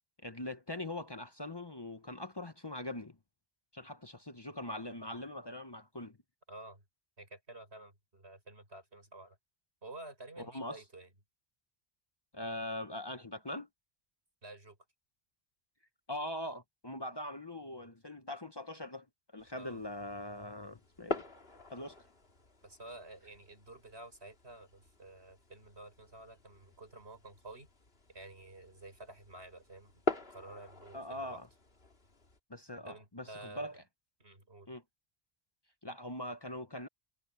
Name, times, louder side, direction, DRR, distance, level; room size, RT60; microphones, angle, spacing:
voice 1, 0.2-3.2 3.7-6.2 10.4-10.8 12.3-13.7 16.1-19.1 19.3-21.2 21.7-22.0 30.9-31.5 32.5-33.8 34.7-34.8 35.8-36.9, left 1 dB, 25° left, 0.9 m, -42 dB
voice 2, 6.5-6.8 7.2-9.4 9.8-11.1 14.4-14.8 19.5-19.8 22.6-27.7 28.1-31.4 32.8-33.7 34.2-34.7, right 2 dB, 90° right, 6.2 m, -51 dB
sound 1, 19.4-32.4, left 2 dB, 70° left, 2.5 m, -44 dB
omnidirectional pair, 1.0 m